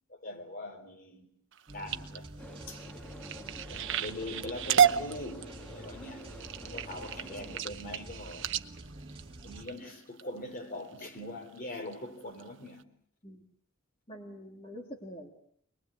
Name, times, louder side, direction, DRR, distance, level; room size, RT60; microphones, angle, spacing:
voice 1, 0.1-1.3 1.7-2.3 2.7-2.8 3.7-6.3 6.6-8.5 9.4-12.9, left 1 dB, 45° left, 3.4 m, -42 dB
sound 1, 1.5-10.2 10.8-11.1 11.6-11.9 12.4-12.5 12.8-12.9, right 8 dB, 65° right, 1.0 m, -32 dB
sound 2, 1.7-9.6, right 1 dB, 30° right, 2.8 m, -47 dB
sound 3, 2.4-7.6, left 1 dB, 5° left, 2.4 m, -49 dB
voice 2, 14.1-15.3, equal, 30° left, 2.8 m, -45 dB
25.0 x 21.5 x 8.1 m
head